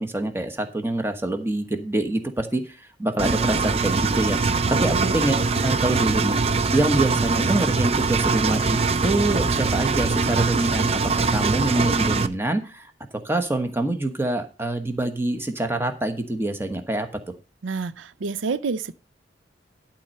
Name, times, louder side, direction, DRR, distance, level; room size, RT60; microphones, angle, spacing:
voice 1, 0.0-6.4 6.7-12.9 13.2-17.1, right 2 dB, 10° right, 1.1 m, -26 dB
Engine, 3.2-12.3, right 4 dB, 30° right, 0.5 m, -22 dB
voice 2, 17.6-18.9, right 4 dB, 85° right, 0.5 m, -28 dB
12.0 x 4.4 x 6.4 m
head